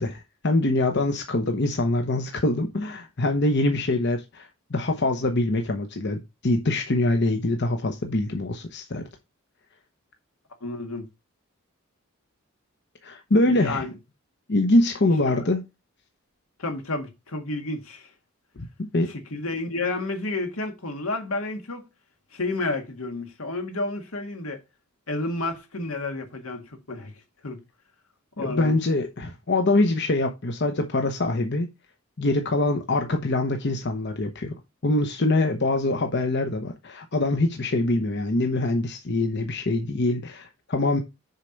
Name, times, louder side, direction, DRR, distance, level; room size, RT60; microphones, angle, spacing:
voice 1, 0.0-9.0 13.0-13.8 14.5-15.6 18.6-19.1 28.4-31.7 32.2-34.5 34.8-41.0, left 2 dB, 55° left, 0.9 m, -24 dB
voice 2, 10.6-11.1 13.5-13.9 15.3-15.5 16.6-18.1 19.3-21.9 22.3-24.6 25.1-27.1 27.4-27.6 28.4-28.8, left 2 dB, 80° left, 1.8 m, -30 dB
6.8 x 4.5 x 5.2 m
head